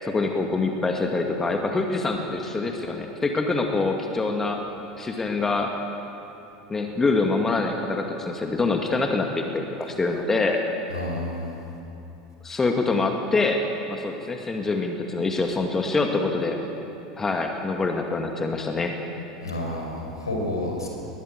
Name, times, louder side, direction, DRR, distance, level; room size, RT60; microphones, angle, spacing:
voice 1, 0.0-4.6 5.0-5.7 6.7-10.6 12.4-13.6 13.9-16.6 17.2-18.9, left 3 dB, 15° left, 3 dB, 2.1 m, -25 dB
voice 2, 10.9-11.6 19.4-20.9, left 1 dB, 80° left, 0 dB, 5.1 m, -30 dB
20.5 x 20.5 x 8.0 m, 2.9 s
figure-of-eight pair, 80°, 2 cm